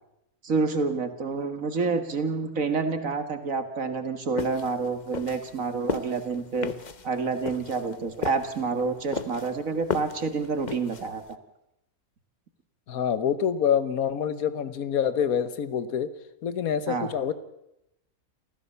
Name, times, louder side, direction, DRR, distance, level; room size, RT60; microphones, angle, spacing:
voice 1, 0.4-6.7 7.0-11.2 16.9-17.1, right 4 dB, 70° right, 9 dB, 2.3 m, -28 dB
sound 1, 4.4-11.3, left 5 dB, 35° left, 0.9 m, -35 dB
voice 2, 12.9-16.1 16.4-17.3, left 8 dB, 80° left, 14 dB, 1.6 m, -26 dB
28.5 x 15.0 x 6.8 m, 0.83 s
omnidirectional pair, 1.5 m